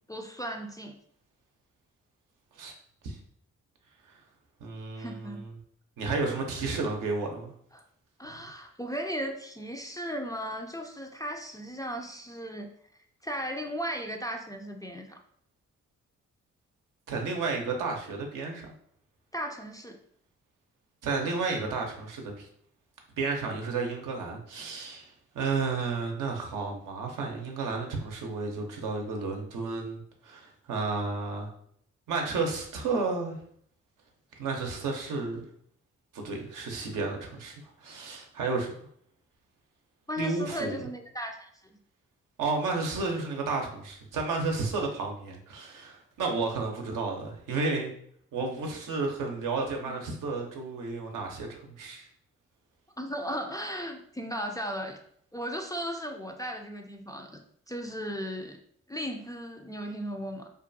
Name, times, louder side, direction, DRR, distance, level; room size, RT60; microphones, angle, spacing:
voice 1, 0.1-0.9 4.9-5.4 7.7-7.8 8.2-12.7 13.2-15.2 19.3-20.0 40.1-41.8 49.9-50.0 53.0-55.0 55.3-57.4 57.7-58.6 58.9-60.5, equal, 10° left, 3 dB, 0.3 m, -36 dB
voice 2, 4.6-5.5 6.0-7.4 17.1-18.7 21.0-22.5 23.2-31.5 32.1-33.4 34.4-35.5 36.1-38.7 40.2-40.7 42.4-47.9 48.3-52.1, right 3 dB, 75° right, 2 dB, 0.6 m, -32 dB
2.5 x 2.2 x 2.6 m, 0.65 s
supercardioid pair, 40°, 33 cm